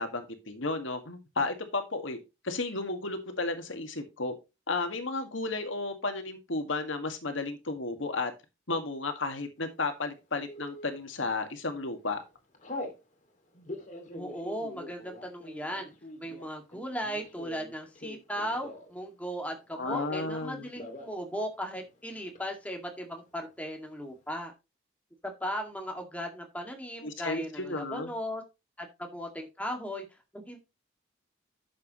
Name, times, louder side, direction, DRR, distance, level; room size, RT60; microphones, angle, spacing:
voice 1, 0.0-2.2 2.4-4.3 4.7-8.3 8.7-12.2 19.7-20.7 27.0-28.1, left 3 dB, 80° left, 7 dB, 1.9 m, -33 dB
Telephone, 10.5-11.0 11.6-11.8 12.1-13.0 13.5-19.0 19.3-20.4 20.7-21.2 21.5-21.6 21.8-22.4, left 1 dB, 40° left, 2.4 m, -43 dB
voice 2, 14.1-15.9 16.2-24.5 25.2-28.4 28.8-30.1 30.3-30.6, equal, 5° left, 3 dB, 2.1 m, -37 dB
11.5 x 7.5 x 3.1 m, 0.25 s
head